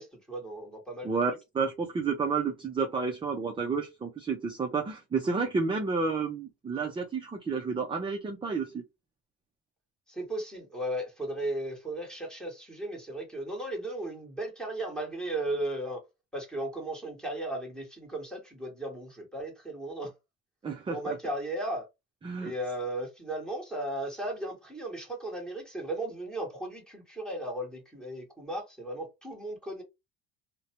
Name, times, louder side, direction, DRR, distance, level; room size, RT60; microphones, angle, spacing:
voice 1, 0.0-1.2 10.1-16.0 16.3-20.1 20.9-21.9 22.4-29.8, right 1 dB, ahead, 1.2 m, -36 dB
voice 2, 1.0-8.8 20.6-21.2 22.2-22.5, right 4 dB, 15° right, 0.4 m, -30 dB
2.5 x 2.1 x 2.8 m
cardioid pair, 115°, 36 cm